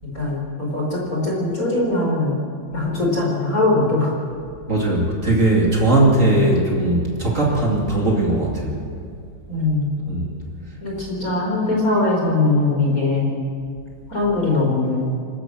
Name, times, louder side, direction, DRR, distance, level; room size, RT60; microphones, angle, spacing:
voice 1, 0.0-2.4 2.7-4.1 9.5-9.9 10.8-13.3 14.1-15.1, left 2 dB, 20° left, -3 dB, 4.2 m, -21 dB
voice 2, 4.7-8.9 10.1-10.4, right 2 dB, 45° right, -2 dB, 0.9 m, -19 dB
26.0 x 13.5 x 7.7 m, 2.2 s
omnidirectional pair, 5.6 m